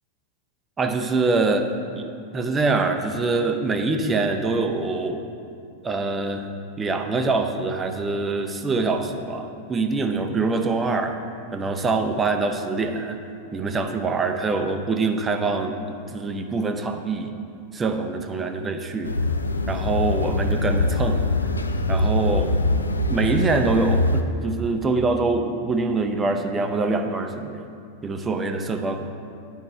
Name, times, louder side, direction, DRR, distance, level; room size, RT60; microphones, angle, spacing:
voice 1, 0.8-1.7 2.0-5.3 5.8-6.5 6.8-11.2 11.5-13.2 13.5-17.3 17.7-19.1 19.7-21.2 21.9-22.5 23.1-27.6 28.0-29.2, right 3 dB, 20° right, 6 dB, 0.6 m, -24 dB
sound 1, 19.0-24.2, left 2 dB, 75° left, 0.4 m, -23 dB
9.8 x 4.6 x 4.3 m, 2.5 s
figure-of-eight pair, 90°, 0 cm